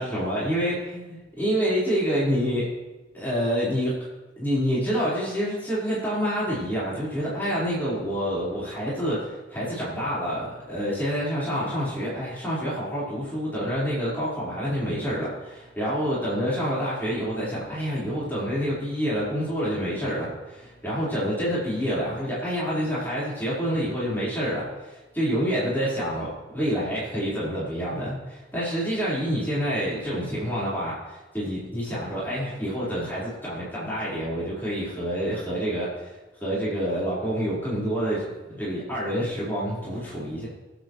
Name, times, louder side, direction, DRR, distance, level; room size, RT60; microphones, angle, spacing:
voice 1, 0.0-2.7 3.1-3.9 4.4-40.5, equal, 10° left, -9 dB, 4.5 m, -27 dB
23.5 x 8.4 x 3.2 m, 1.2 s
head